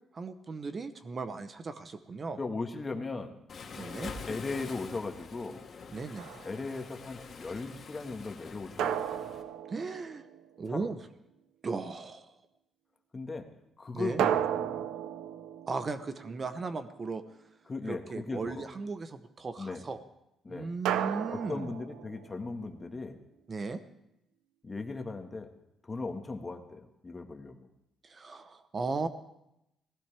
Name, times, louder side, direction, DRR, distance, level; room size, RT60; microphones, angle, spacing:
voice 1, 0.1-2.4 3.8-4.1 5.9-6.4 9.7-10.2 10.6-11.0 11.6-12.3 13.9-14.2 15.7-17.2 17.9-20.0 20.5-21.7 23.5-23.8 28.0-29.1, right 4 dB, 40° right, 10 dB, 0.9 m, -36 dB
voice 2, 2.4-3.4 4.3-5.6 6.4-9.2 10.7-10.9 13.1-13.5 13.8-14.9 17.7-18.7 19.6-19.8 20.4-20.7 21.3-23.2 24.6-25.5 25.8-27.7, left 3 dB, 25° left, 4 dB, 1.6 m, -38 dB
Waves surf, 3.5-9.4, left 5 dB, 50° left, 2.0 m, -45 dB
sound 1, 6.2-6.7 8.8-10.6 14.2-16.8 20.9-22.5, right 10 dB, 85° right, 0.6 m, -34 dB
18.0 x 16.0 x 3.4 m, 0.83 s
cardioid pair, 90°, 0 cm